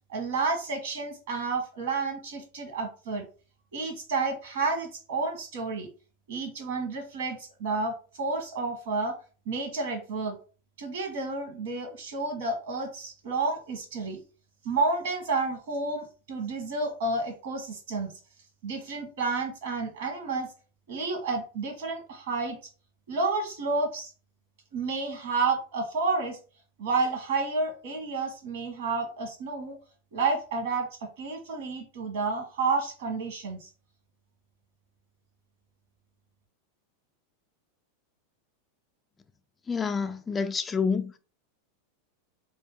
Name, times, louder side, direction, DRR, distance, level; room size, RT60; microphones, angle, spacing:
voice 1, 0.1-3.3 3.7-5.9 6.3-9.1 9.4-10.4 10.8-14.2 14.6-18.1 18.6-20.5 20.9-22.6 23.1-24.1 24.7-26.4 26.8-29.8 30.1-33.7, right 3 dB, 70° right, 1.4 m, -30 dB
voice 2, 39.7-41.1, left 5 dB, 20° left, 0.3 m, -28 dB
2.8 x 2.7 x 3.7 m
hypercardioid pair, 90°, 0 cm